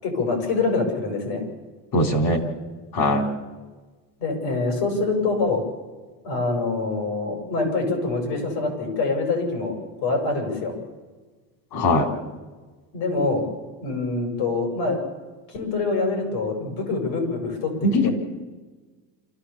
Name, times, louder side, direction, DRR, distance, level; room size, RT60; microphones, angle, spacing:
voice 1, 0.0-1.4 4.2-5.6 6.2-10.7 12.9-13.5 13.8-15.0 15.5-17.7 18.0-18.1, left 3 dB, 75° left, 3 dB, 7.4 m, -25 dB
voice 2, 1.9-2.4 2.9-3.3 11.7-12.1 17.8-18.1, left 1 dB, 50° left, 5 dB, 3.7 m, -20 dB
27.0 x 14.5 x 7.2 m, 1.3 s
cardioid pair, 135°, 47 cm